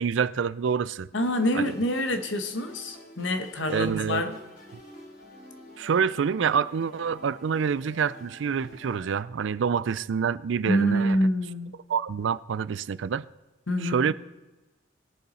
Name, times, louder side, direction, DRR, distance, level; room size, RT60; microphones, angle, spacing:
voice 1, 0.0-1.1 1.5-1.7 3.7-4.2 5.8-11.2 11.9-13.3 13.8-14.1, right 6 dB, 70° right, 0.4 m, -27 dB
voice 2, 1.1-4.4 10.7-11.8 13.7-14.1, equal, 70° left, 1.2 m, -26 dB
sound 1, 1.2-9.2, left 1 dB, 50° left, 3.1 m, -49 dB
19.5 x 6.9 x 4.2 m
head